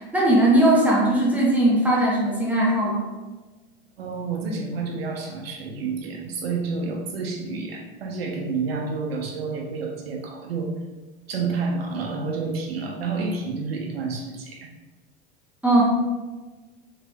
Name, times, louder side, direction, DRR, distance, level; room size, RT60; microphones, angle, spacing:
voice 1, 0.0-3.1 15.6-15.8, right 1 dB, 5° right, -6 dB, 0.9 m, -19 dB
voice 2, 4.0-10.8 11.3-14.7, right 4 dB, 80° right, 1 dB, 0.8 m, -29 dB
3.8 x 3.3 x 2.3 m, 1.2 s
hypercardioid pair, 90°, 30 cm